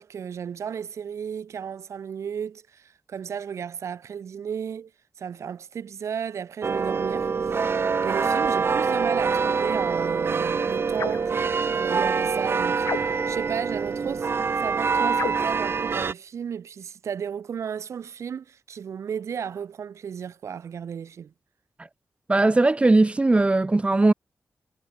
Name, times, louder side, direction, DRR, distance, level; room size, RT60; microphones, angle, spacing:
voice 1, 0.0-4.9 5.2-7.3 7.6-14.3 14.6-21.3, right 7 dB, 90° right, 3.4 m, -34 dB
sound 1, 6.6-16.1, right 5 dB, 55° right, 2.0 m, -25 dB
sound 2, 10.9-11.3 12.8-13.4 15.1-15.6, left 7 dB, 80° left, 1.3 m, -32 dB
voice 2, 22.3-24.1, right 2 dB, 25° right, 2.0 m, -19 dB
wide cardioid pair, 100°, 5 cm